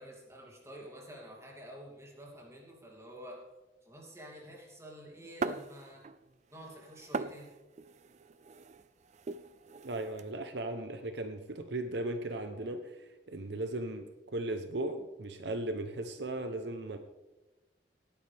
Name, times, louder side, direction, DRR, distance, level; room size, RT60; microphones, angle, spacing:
voice 1, 0.0-3.4 3.8-6.0 6.5-7.5, equal, 15° right, -1 dB, 2.8 m, -49 dB
sound 1, 5.4-6.3 6.5-10.2, right 4 dB, 40° right, 0.4 m, -40 dB
voice 2, 9.8-17.0, right 2 dB, 70° right, 7 dB, 0.9 m, -37 dB
18.5 x 10.0 x 3.5 m, 1.1 s
head